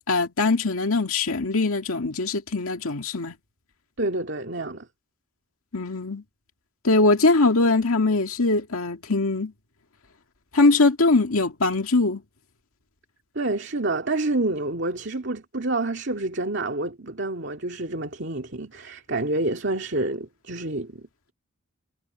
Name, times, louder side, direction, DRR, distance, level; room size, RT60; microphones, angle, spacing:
voice 1, 0.1-3.3 5.7-6.2 6.8-9.5 10.5-12.2, left 3 dB, 85° left, 2.0 m, -21 dB
voice 2, 4.0-4.9 13.3-21.3, right 2 dB, 55° right, 2.4 m, -28 dB
head